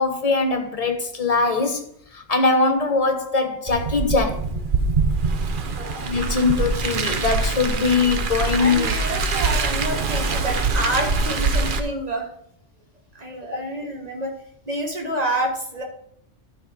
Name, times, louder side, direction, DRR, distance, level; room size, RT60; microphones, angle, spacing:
voice 1, 0.0-1.8 2.1-4.4 6.0-8.9 13.5-13.6, left 4 dB, 30° left, 1.2 m, -21 dB
Car, 3.7-11.8, right 4 dB, 50° right, 0.9 m, -24 dB
voice 2, 5.7-6.1 8.6-12.3 13.1-14.3 14.7-15.8, right 1 dB, 35° right, 1.8 m, -28 dB
12.0 x 4.7 x 5.3 m
omnidirectional pair, 1.3 m